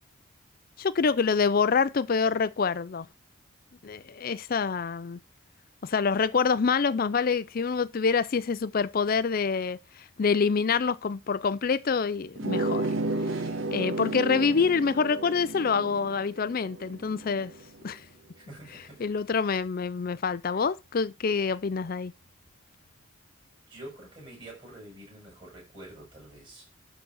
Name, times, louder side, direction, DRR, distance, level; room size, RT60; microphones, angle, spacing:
voice 1, 0.8-3.1 3.8-5.2 5.8-12.9 13.7-17.5 17.8-18.0 19.0-22.1, left 5 dB, 45° left, 0.4 m, -26 dB
sound 1, 12.4-17.6, right 2 dB, 70° right, 1.3 m, -32 dB
voice 2, 18.4-19.0 23.7-26.7, right 1 dB, 25° right, 6.8 m, -47 dB
12.0 x 4.0 x 6.2 m
head